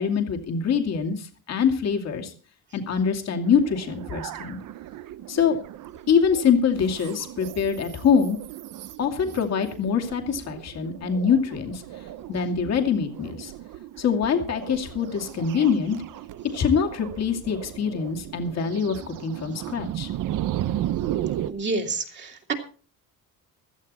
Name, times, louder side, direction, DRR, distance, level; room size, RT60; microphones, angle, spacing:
voice 1, 0.0-2.3 2.7-4.6 5.3-5.6 6.1-8.4 9.0-11.8 12.3-13.5 14.0-16.0 16.5-20.1, left 6 dB, 45° left, 3 dB, 2.5 m, -24 dB
sound 1, 3.4-21.5, right 12 dB, 60° right, 0.9 m, -35 dB
voice 2, 21.5-22.5, right 3 dB, 30° right, 2 dB, 2.4 m, -28 dB
16.0 x 14.0 x 4.2 m, 0.38 s
cardioid pair, 165°, 36 cm